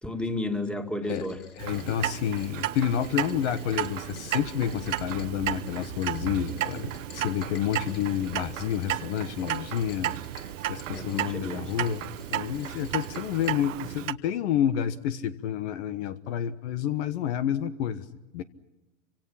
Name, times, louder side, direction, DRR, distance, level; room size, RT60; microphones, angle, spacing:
voice 1, 0.0-1.4 10.9-11.9, left 1 dB, 5° left, 5 dB, 2.3 m, -33 dB
Rain, 1.1-13.5, left 7 dB, 35° left, 3.0 m, -50 dB
voice 2, 1.6-10.1 10.7-12.0 12.3-18.1 18.3-18.4, left 10 dB, 60° left, 12 dB, 1.4 m, -29 dB
Clock, 1.6-14.1, right 14 dB, 75° right, 1.0 m, -33 dB
28.5 x 25.5 x 5.8 m, 1.0 s
hypercardioid pair, 120°, 38 cm